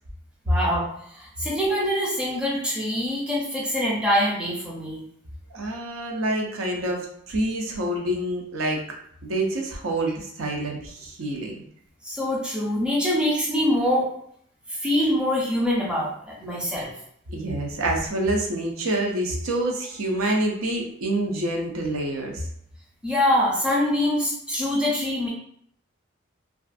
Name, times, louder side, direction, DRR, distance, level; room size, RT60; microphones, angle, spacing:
voice 1, 0.5-0.9 1.1-5.0 12.0-14.1 14.7-16.9 23.0-25.3, left 1 dB, 5° right, -4 dB, 0.5 m, -24 dB
voice 2, 5.5-8.8 9.2-11.5 17.3-22.4, right 1 dB, 85° right, 1 dB, 0.5 m, -27 dB
2.4 x 2.4 x 2.4 m, 0.65 s
head